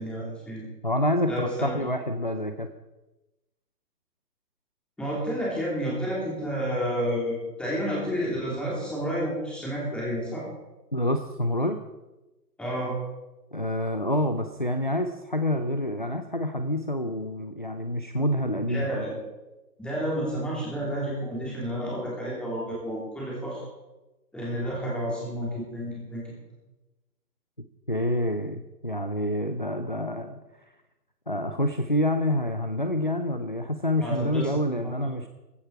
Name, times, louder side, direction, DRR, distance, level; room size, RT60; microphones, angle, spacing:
voice 1, 0.0-0.7 1.3-1.8 5.0-10.4 12.6-12.9 18.7-19.2 19.8-23.6 24.3-26.3 34.0-34.5 34.8-34.9, equal, ahead, -5 dB, 3.0 m, -30 dB
voice 2, 0.8-2.7 10.9-11.8 13.5-19.1 27.9-30.4 31.3-35.3, left 1 dB, 35° left, 7 dB, 0.4 m, -27 dB
15.5 x 12.0 x 4.6 m, 1.1 s
hypercardioid pair, 165°, 48 cm